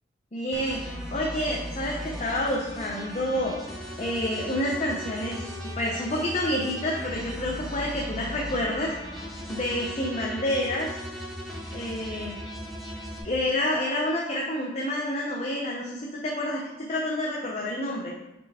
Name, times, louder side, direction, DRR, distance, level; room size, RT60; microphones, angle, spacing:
voice 1, 0.3-3.5 4.0-5.5 5.8-8.9 9.5-11.0 11.7-12.4 13.2-16.6 16.9-18.1, left 1 dB, 40° left, -3 dB, 0.8 m, -28 dB
sound 1, 0.5-13.2, equal, ahead, 1.6 m, -37 dB
6.7 x 4.4 x 4.3 m, 0.94 s
head